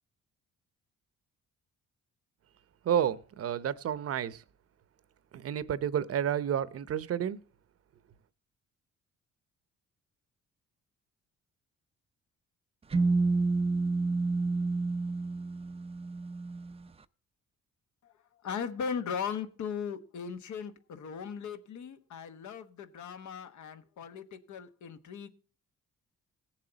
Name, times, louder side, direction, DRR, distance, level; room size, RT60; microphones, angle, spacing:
voice 1, 2.8-4.4 5.3-7.4, right 9 dB, 50° right, 0.7 m, -30 dB
sound 1, 12.9-16.8, right 3 dB, 20° right, 0.4 m, -29 dB
voice 2, 18.4-25.3, left 6 dB, 70° left, 1.1 m, -38 dB
17.0 x 7.4 x 3.9 m
cardioid pair, 90°, 30 cm